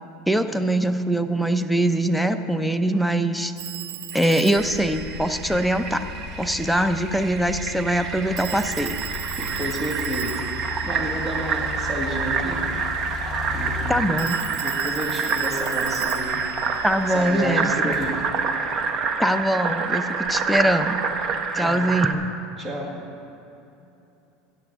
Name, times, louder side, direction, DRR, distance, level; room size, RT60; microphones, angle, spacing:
voice 1, 0.3-3.5 4.1-6.1 6.4-9.0 13.9-14.4 16.8-18.0 19.2-21.0 21.5-22.3, right 1 dB, ahead, 9 dB, 0.5 m, -22 dB
Telephone, 3.6-6.2 8.4-12.0 14.2-17.7, right 15 dB, 70° right, 0.4 m, -37 dB
Fill (with liquid), 4.1-22.1, right 5 dB, 40° right, 0.8 m, -28 dB
sound 1, 4.6-19.6 20.2-21.4, left 5 dB, 40° left, 2.7 m, -37 dB
voice 2, 9.4-12.6 13.5-16.3 17.1-18.2 21.6-21.9 22.6-22.9, right 1 dB, 20° right, -2 dB, 1.8 m, -31 dB
16.0 x 10.5 x 3.6 m, 2.8 s
supercardioid pair, 150°, 0 cm